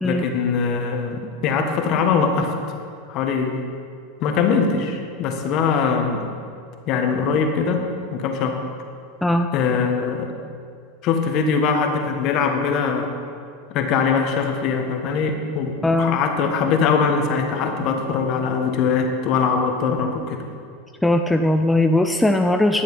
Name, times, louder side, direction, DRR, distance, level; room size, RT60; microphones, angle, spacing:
voice 1, 0.0-2.5 3.1-3.6 4.2-6.3 6.9-7.8 8.1-8.6 9.5-10.3 11.0-13.1 13.7-20.4, left 5 dB, 50° left, 4 dB, 1.4 m, -22 dB
voice 2, 15.8-16.2 21.0-22.8, left 1 dB, 5° left, 5 dB, 0.4 m, -19 dB
11.0 x 7.2 x 5.5 m, 2.2 s
supercardioid pair, 120°, 0 cm